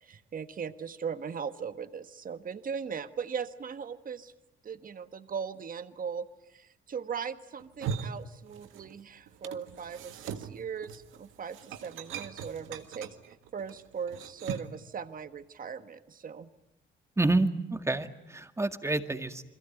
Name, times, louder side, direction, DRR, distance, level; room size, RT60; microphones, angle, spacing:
voice 1, 0.0-4.3 4.6-11.6 11.8-16.5, right 6 dB, 45° right, 11 dB, 1.4 m, -39 dB
sound 1, 7.6-9.0 9.3-14.8, right 7 dB, 85° right, 1.8 m, -40 dB
voice 2, 17.2-19.4, right 2 dB, 15° right, 8 dB, 2.0 m, -28 dB
29.5 x 22.5 x 9.1 m, 0.86 s
cardioid pair, 90°, 20 cm